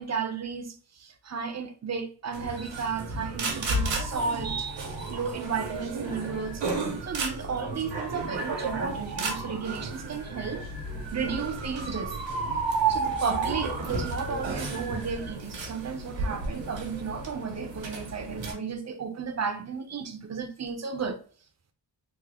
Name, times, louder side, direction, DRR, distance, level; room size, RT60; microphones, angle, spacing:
voice 1, 0.0-6.6 7.0-10.6 11.1-12.1 12.9-21.2, right 5 dB, 40° right, 0.6 m, -33 dB
sound 1, 2.3-18.5, right 3 dB, 90° right, 1.1 m, -32 dB
3.6 x 2.0 x 3.3 m
wide cardioid pair, 95°, 44 cm